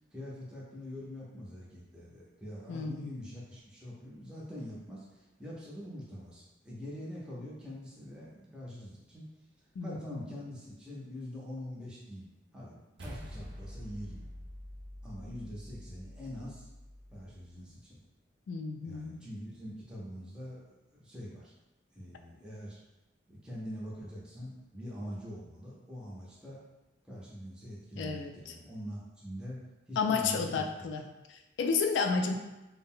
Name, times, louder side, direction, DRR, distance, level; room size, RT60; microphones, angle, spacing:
voice 1, 0.1-9.2 9.8-12.3 12.5-14.3 15.0-16.7 17.1-18.0 18.8-20.6 20.9-21.5 21.9-22.8 23.3-26.6 27.0-29.6 29.9-30.9, equal, 5° right, -6 dB, 0.5 m, -44 dB
voice 2, 2.7-3.2 9.8-10.3 18.5-19.2 28.0-28.5 30.0-31.0 31.3-32.3, left 5 dB, 75° left, 5 dB, 0.3 m, -32 dB
sound 1, 13.0-17.5, equal, 65° right, 0.5 m, -47 dB
2.4 x 2.0 x 3.6 m, 1.0 s
head